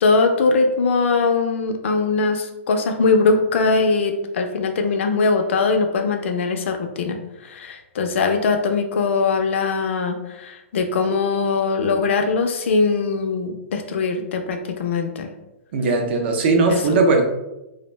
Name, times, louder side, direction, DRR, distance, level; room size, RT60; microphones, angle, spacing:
voice 1, 0.0-15.3 16.7-16.8, left 4 dB, 60° left, 5 dB, 0.4 m, -21 dB
voice 2, 15.7-17.2, right 3 dB, 50° right, 3 dB, 0.5 m, -18 dB
2.5 x 2.0 x 3.1 m, 0.96 s
hypercardioid pair, 150°, 7 cm